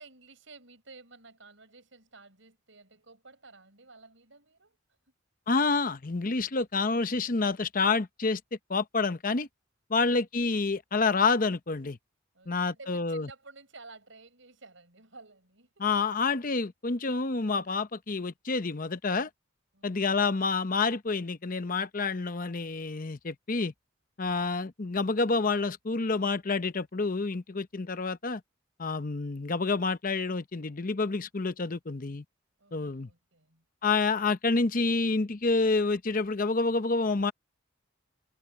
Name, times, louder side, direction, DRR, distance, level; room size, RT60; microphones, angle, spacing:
voice 1, 0.0-4.8 12.3-15.9 19.7-20.0 32.6-33.6, right 3 dB, 65° right, 7.4 m, -53 dB
voice 2, 5.5-8.4 8.7-9.5 9.9-12.0 12.5-13.3 15.8-19.3 19.8-23.7 24.2-28.4 28.8-32.2 32.7-33.1 33.8-37.3, left 4 dB, 45° left, 0.8 m, -28 dB
head